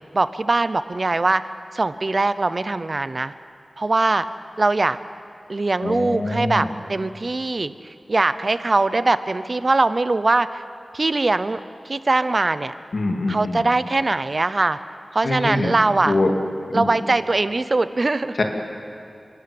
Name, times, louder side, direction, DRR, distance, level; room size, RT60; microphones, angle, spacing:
voice 1, 0.1-1.5 1.7-3.3 3.8-4.2 4.6-5.0 5.5-7.7 8.1-10.6 10.9-11.6 11.9-12.7 13.3-14.8 15.1-16.1 16.7-18.4, right 2 dB, 50° right, 13 dB, 0.7 m, -21 dB
voice 2, 5.8-6.7 12.9-13.6 15.2-15.7 16.1-16.3 16.7-16.9 18.4-18.5, left 2 dB, 70° left, 2 dB, 2.5 m, -23 dB
29.5 x 12.5 x 8.7 m, 2.5 s
wide cardioid pair, 70°, 0 cm